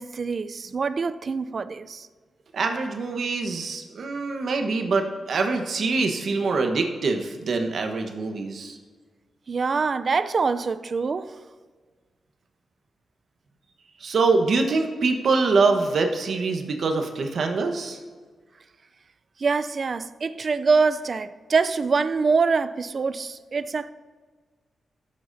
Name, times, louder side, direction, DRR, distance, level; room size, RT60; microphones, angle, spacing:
voice 1, 0.0-2.1 9.5-11.4 19.4-23.9, right 4 dB, 50° right, 0.5 m, -24 dB
voice 2, 2.5-8.8 14.0-18.0, right 3 dB, 70° right, 1.2 m, -24 dB
16.5 x 7.6 x 2.7 m
cardioid pair, 65°, 0 cm